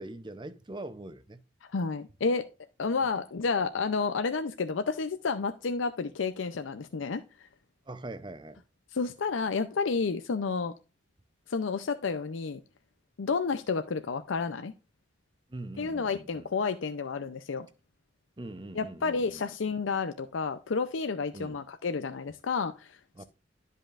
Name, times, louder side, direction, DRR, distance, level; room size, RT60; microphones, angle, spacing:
voice 1, 0.0-1.4 7.9-8.6 15.5-16.5 18.4-19.4 21.3-21.6 23.1-23.2, right 2 dB, 25° right, 0.6 m, -42 dB
voice 2, 1.7-2.5 2.8-7.5 8.9-10.7 11.5-12.6 13.2-14.7 15.8-17.7 18.8-23.2, left 4 dB, 85° left, 0.5 m, -31 dB
12.0 x 5.5 x 2.4 m
head